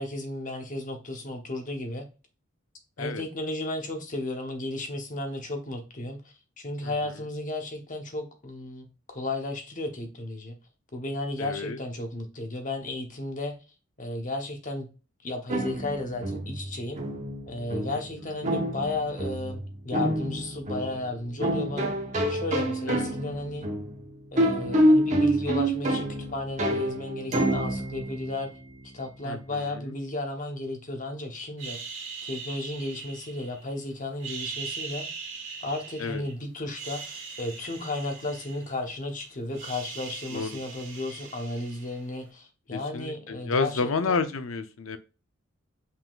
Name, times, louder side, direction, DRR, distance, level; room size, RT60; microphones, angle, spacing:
voice 1, 0.0-2.1 3.0-6.2 6.6-10.6 10.9-13.5 14.0-14.9 15.2-17.0 17.5-22.0 22.3-23.7 24.3-28.5 28.9-31.8 32.2-35.1 35.6-44.2, left 2 dB, 40° left, 4 dB, 1.0 m, -34 dB
voice 2, 6.8-7.2 11.4-11.8 17.9-18.0 18.5-18.6 22.9-23.1 29.2-30.0 36.0-36.2 40.3-40.6 42.7-45.0, left 4 dB, 80° left, 10 dB, 0.6 m, -31 dB
sound 1, 15.5-29.1, right 1 dB, 35° right, 1.0 m, -28 dB
sound 2, 31.6-33.7 34.1-36.3 36.7-39.1 39.3-42.2, right 5 dB, 65° right, 1.6 m, -40 dB
5.7 x 3.7 x 2.4 m, 0.31 s
head